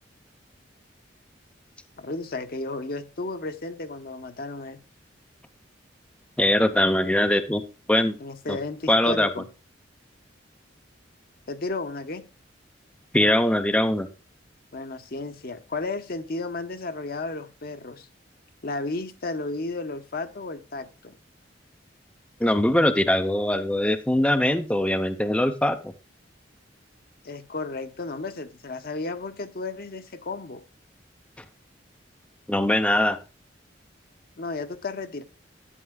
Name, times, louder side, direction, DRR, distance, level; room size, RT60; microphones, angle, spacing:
voice 1, 2.0-4.8 8.2-9.5 11.5-12.2 14.7-18.1 18.6-21.1 27.2-30.6 34.4-35.2, left 3 dB, 55° left, 9 dB, 0.9 m, -33 dB
voice 2, 6.4-7.6 7.9-8.2 8.5-8.6 8.9-9.3 13.1-14.1 22.4-25.9 32.5-33.2, left 1 dB, 5° left, 7 dB, 0.5 m, -22 dB
11.0 x 8.5 x 2.2 m, 0.32 s
head